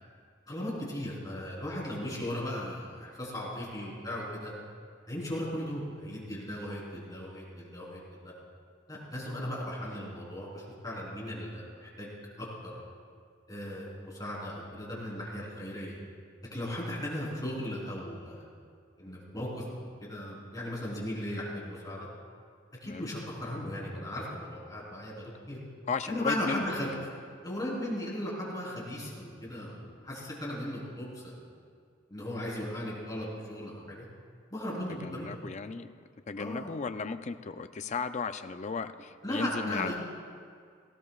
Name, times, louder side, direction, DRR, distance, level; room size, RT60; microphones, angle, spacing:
voice 1, 0.5-4.5 5.1-8.3 8.9-12.1 12.4-12.8 13.5-16.0 16.5-18.5 19.0-22.1 22.8-25.6 26.1-26.9 27.4-31.5 32.1-34.1 34.5-35.5 36.4-36.8 39.2-39.9, left 1 dB, 20° left, -5 dB, 3.8 m, -37 dB
voice 2, 25.9-26.7 34.9-35.9 36.3-39.9, left 4 dB, 35° left, 10 dB, 0.4 m, -35 dB
18.0 x 16.5 x 2.4 m, 2.1 s
head